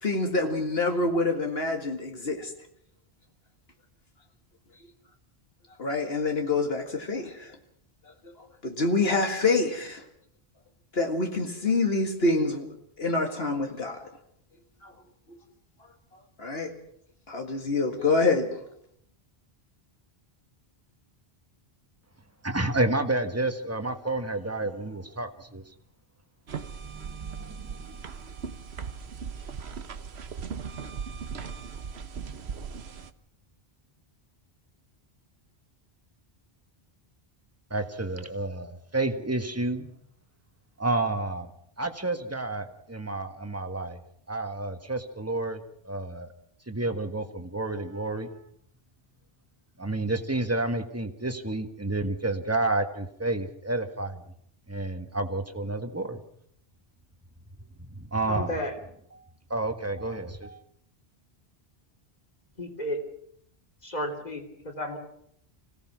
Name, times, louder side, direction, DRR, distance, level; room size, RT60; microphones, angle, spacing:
voice 1, 0.0-2.5 5.8-7.6 8.4-10.1 10.9-12.7 13.0-14.0 14.8-14.9 15.3-15.4 16.4-16.7 17.3-18.7, left 3 dB, 70° left, 3 dB, 2.2 m, -26 dB
voice 2, 22.4-25.6 26.8-28.0 37.7-39.9 40.8-41.5 41.8-44.0 44.3-46.3 46.7-48.4 49.8-54.2 54.7-56.2 57.8-58.6 59.5-60.6, right 2 dB, 15° right, 6 dB, 1.6 m, -30 dB
sound 1, 26.5-33.1, right 6 dB, 85° right, 1.3 m, -38 dB
voice 3, 58.3-58.7 62.6-63.0 63.8-65.0, left 1 dB, 40° left, 5 dB, 3.4 m, -33 dB
25.5 x 17.0 x 6.1 m, 0.69 s
omnidirectional pair, 1.1 m